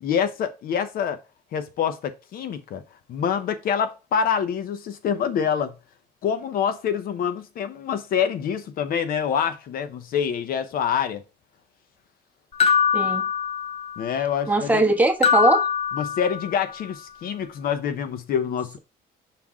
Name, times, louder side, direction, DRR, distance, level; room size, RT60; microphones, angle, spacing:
voice 1, 0.0-1.2 1.5-2.8 3.1-5.7 6.2-11.2 14.0-14.8 16.0-18.8, left 7 dB, 60° left, 0.8 m, -26 dB
sound 1, 12.6-14.1 15.2-16.7, left 7 dB, 35° left, 1.0 m, -23 dB
voice 2, 12.9-13.3 14.5-15.6, right 2 dB, 10° right, 1.3 m, -20 dB
5.8 x 3.6 x 4.7 m
cardioid pair, 110°, 17 cm